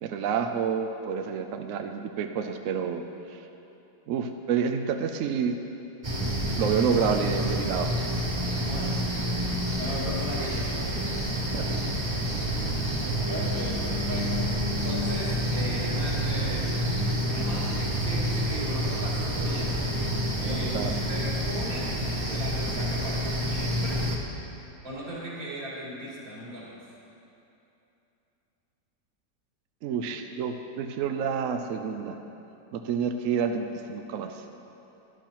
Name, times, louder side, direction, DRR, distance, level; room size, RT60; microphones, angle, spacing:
voice 1, 0.0-3.0 4.1-5.6 6.6-7.9 11.5-11.8 13.0-13.1 20.5-21.0 29.8-32.2 32.7-34.4, right 6 dB, 75° right, 6 dB, 0.7 m, -29 dB
sound 1, 6.0-24.2, equal, 30° right, 0.5 m, -28 dB
voice 2, 8.4-9.0 9.7-11.0 11.3-11.6 13.2-14.6 14.8-16.8 17.2-19.8 20.1-20.8 21.1-21.9 22.3-24.0 24.8-26.8, equal, 55° right, -7 dB, 2.6 m, -38 dB
12.0 x 11.5 x 3.0 m, 2.9 s
omnidirectional pair, 1.8 m